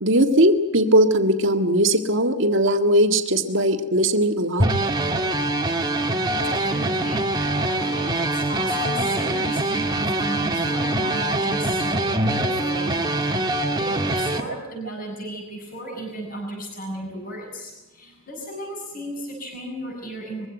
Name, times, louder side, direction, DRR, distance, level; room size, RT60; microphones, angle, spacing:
voice 1, 0.0-4.7, right 1 dB, 55° right, 6 dB, 1.8 m, -19 dB
sound 1, 4.6-14.4, right 2 dB, 20° right, 1.6 m, -24 dB
voice 2, 6.3-7.3 7.7-13.5 13.8-20.5, right 1 dB, 40° left, 0 dB, 7.3 m, -35 dB
22.5 x 16.0 x 9.2 m, 1.1 s
head